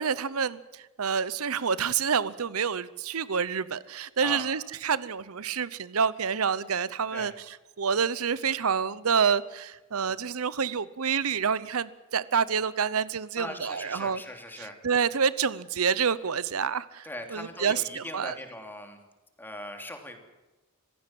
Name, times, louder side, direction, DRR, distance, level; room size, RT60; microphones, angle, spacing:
voice 1, 0.0-14.2 14.6-18.3, right 6 dB, 90° right, 0.8 m, -28 dB
voice 2, 13.4-14.7 17.0-19.0 19.4-20.2, left 1 dB, 10° left, 3.0 m, -40 dB
26.0 x 16.0 x 7.7 m
head